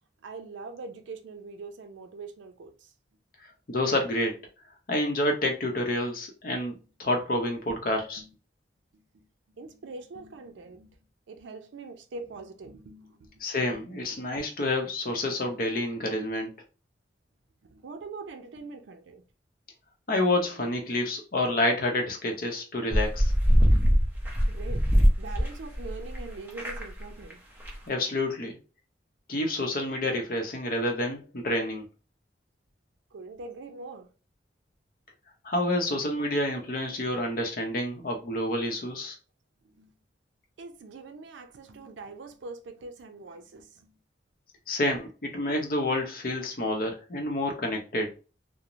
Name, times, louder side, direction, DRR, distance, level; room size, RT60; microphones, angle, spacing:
voice 1, 0.2-2.9 8.0-8.3 8.9-9.3 9.5-11.0 11.3-13.5 14.1-14.2 17.6-19.2 24.5-24.9 25.2-27.4 33.1-34.1 39.6-39.9 40.6-43.9, right 3 dB, 90° right, 0.4 m, -43 dB
voice 2, 3.7-4.4 4.9-6.7 7.0-8.2 13.4-16.5 20.1-23.3 27.9-28.6 29.3-31.8 35.4-39.2 44.7-48.1, left 1 dB, 50° left, 0.6 m, -28 dB
sound 1, 22.9-26.2 26.5-27.0 27.3-27.4 27.6-27.7, equal, 10° right, 0.5 m, -22 dB
3.0 x 2.0 x 2.5 m
head